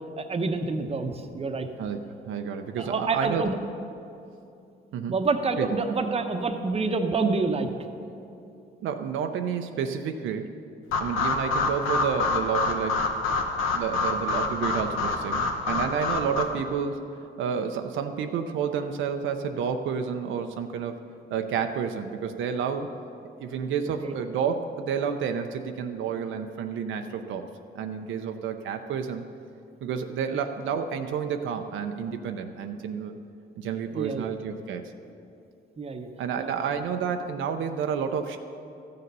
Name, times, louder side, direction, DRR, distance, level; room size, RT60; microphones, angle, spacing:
voice 1, 0.2-1.7 2.8-3.6 5.1-7.7 24.0-24.1 30.3-30.4 33.9-34.3 35.8-36.1 36.4-36.5, right 4 dB, 30° right, 6 dB, 0.9 m, -27 dB
voice 2, 1.8-3.5 4.9-5.2 5.6-5.7 8.8-10.5 11.0-13.1 13.7-17.0 17.4-21.0 21.3-22.9 23.4-27.4 27.7-29.2 29.8-33.2 33.6-34.8 36.2-38.4, right 7 dB, 75° right, 6 dB, 0.6 m, -30 dB
sound 1, 10.9-16.4, left 3 dB, 85° left, 1.0 m, -27 dB
13.5 x 6.7 x 5.4 m, 2.7 s
cardioid pair, 90°, 20 cm